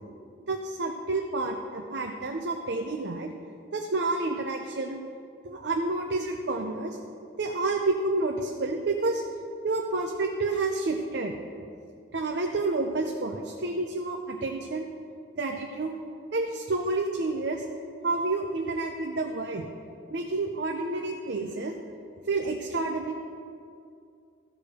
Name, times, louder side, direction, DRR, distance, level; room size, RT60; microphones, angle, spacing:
voice 1, 0.5-3.3 3.7-5.0 5.4-7.0 7.4-9.2 9.6-11.4 12.1-14.9 15.4-15.9 16.3-17.6 18.0-19.7 20.1-21.8 22.3-23.2, right 3 dB, 60° right, 3 dB, 0.6 m, -29 dB
13.5 x 4.9 x 6.6 m, 2.5 s
head